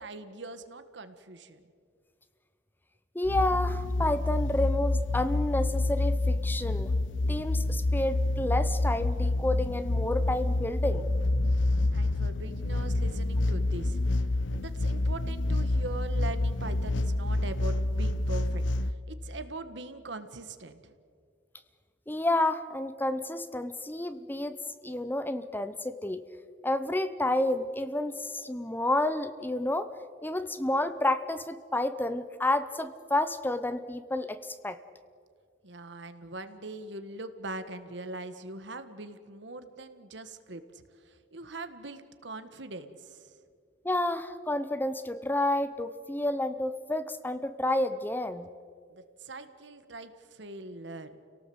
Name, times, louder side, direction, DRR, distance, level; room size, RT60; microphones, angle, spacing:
voice 1, 0.0-1.6 11.9-20.9 35.6-43.3 48.9-51.1, right 2 dB, 65° right, 10 dB, 1.6 m, -42 dB
voice 2, 3.1-6.9 7.3-11.1 22.1-24.6 24.8-26.2 26.6-29.9 30.2-34.8 43.8-48.5, left 1 dB, 10° left, 12 dB, 0.7 m, -30 dB
sound 1, 3.2-18.9, left 2 dB, 75° left, 0.8 m, -28 dB
29.5 x 18.0 x 7.9 m, 2.2 s
head